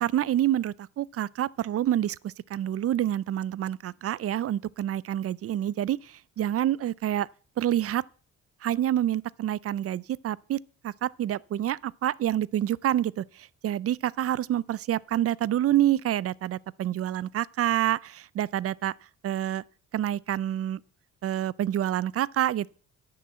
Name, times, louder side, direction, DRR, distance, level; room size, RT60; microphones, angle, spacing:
voice 1, 0.0-7.3 7.6-8.0 8.6-10.6 10.8-18.9 19.2-19.6 19.9-20.8 21.2-22.7, right 12 dB, 50° right, 0.5 m, -27 dB
10.5 x 6.9 x 7.6 m
cardioid pair, 90°, 30 cm